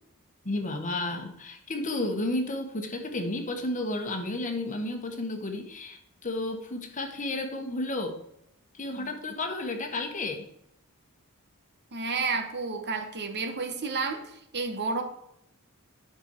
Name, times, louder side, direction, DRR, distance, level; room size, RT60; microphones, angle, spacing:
voice 1, 0.4-8.2 8.7-10.5, left 2 dB, 35° left, 5 dB, 1.2 m, -32 dB
voice 2, 11.9-15.0, right 4 dB, 50° right, 6 dB, 1.2 m, -31 dB
10.0 x 6.2 x 4.5 m, 0.77 s
head